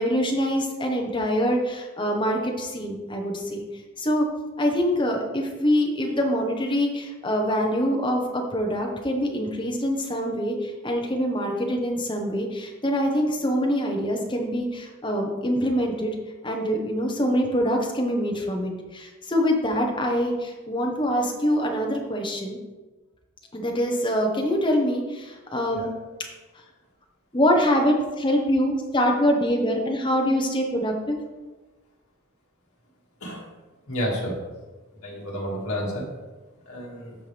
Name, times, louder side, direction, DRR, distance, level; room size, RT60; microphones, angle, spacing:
voice 1, 0.0-3.6 4.0-4.3 4.6-16.1 16.4-22.6 23.5-25.9 27.3-31.2, equal, 20° left, 1 dB, 1.1 m, -24 dB
voice 2, 33.9-34.3 35.0-36.1 36.7-37.2, equal, 80° left, -3 dB, 2.3 m, -30 dB
13.5 x 4.5 x 3.5 m, 1.2 s
head